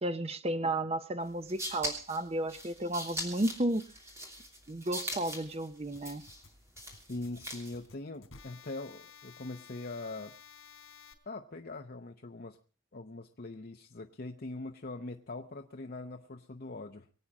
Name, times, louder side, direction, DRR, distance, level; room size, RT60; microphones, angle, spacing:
voice 1, 0.0-3.8 4.7-6.2, right 1 dB, 30° right, 11 dB, 0.7 m, -33 dB
sound 1, 1.3-7.9, equal, 15° right, 2.9 m, -41 dB
sound 2, 5.9-11.1, left 6 dB, 85° left, 3.4 m, -54 dB
voice 2, 7.1-10.3 11.3-12.6 12.9-17.1, left 2 dB, 50° left, 4 dB, 0.8 m, -42 dB
23.5 x 8.7 x 5.2 m, 0.38 s
head